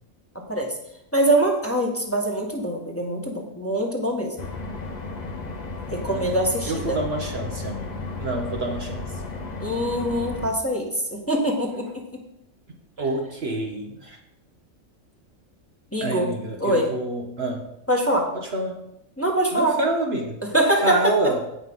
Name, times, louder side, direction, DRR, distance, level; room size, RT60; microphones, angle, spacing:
voice 1, 1.1-4.5 5.9-7.0 9.6-10.8 11.1-11.9 12.1-12.2 15.9-16.3 16.6-16.9 17.9-18.3 19.2-19.8 20.4-21.1, right 1 dB, 10° left, -1 dB, 1.5 m, -23 dB
sound 1, 4.4-10.5, left 3 dB, 35° left, 1.0 m, -33 dB
voice 2, 6.7-9.0 13.0-14.2 16.0-17.7 18.3-18.8 19.5-20.4 20.8-21.4, right 2 dB, 55° right, 2 dB, 1.3 m, -27 dB
17.0 x 5.6 x 3.7 m, 0.80 s
omnidirectional pair, 1.4 m